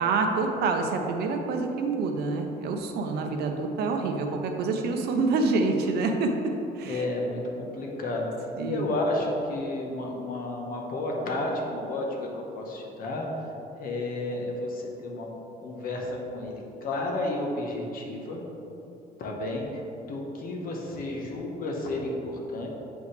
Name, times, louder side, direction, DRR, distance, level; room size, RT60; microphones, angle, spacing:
voice 1, 0.0-6.5 6.8-7.0 8.6-8.9, right 3 dB, 70° right, 3 dB, 0.8 m, -27 dB
voice 2, 6.8-13.3 13.7-15.3 15.6-18.4 19.2-19.7 20.1-22.7, left 2 dB, 60° left, 0 dB, 1.2 m, -32 dB
8.0 x 5.2 x 3.3 m, 2.9 s
cardioid pair, 110°, 17 cm